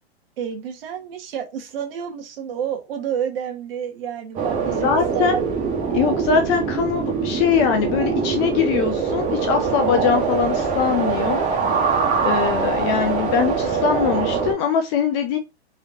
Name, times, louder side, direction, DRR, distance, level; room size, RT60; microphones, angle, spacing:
voice 1, 0.4-5.4, right 8 dB, 60° right, 1.6 m, -29 dB
sound 1, 4.4-14.5, right 5 dB, 25° right, 1.4 m, -23 dB
voice 2, 4.7-5.4 5.9-11.4 12.2-15.4, left 7 dB, 25° left, 0.5 m, -22 dB
4.0 x 3.0 x 2.8 m
hypercardioid pair, 130°, 33 cm